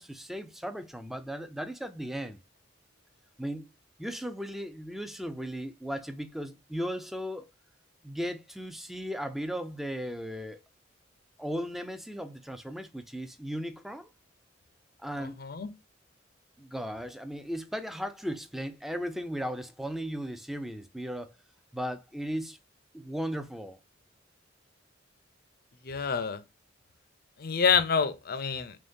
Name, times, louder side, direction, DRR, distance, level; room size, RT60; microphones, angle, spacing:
voice 1, 0.0-2.4 3.4-3.7 4.0-7.5 8.0-10.6 11.4-14.1 15.0-15.4 16.6-21.3 21.7-22.6 22.9-23.8, equal, ahead, 0.4 m, -36 dB
voice 2, 25.9-26.4 27.4-28.7, left 6 dB, 50° left, 0.5 m, -27 dB
3.5 x 3.1 x 2.6 m
head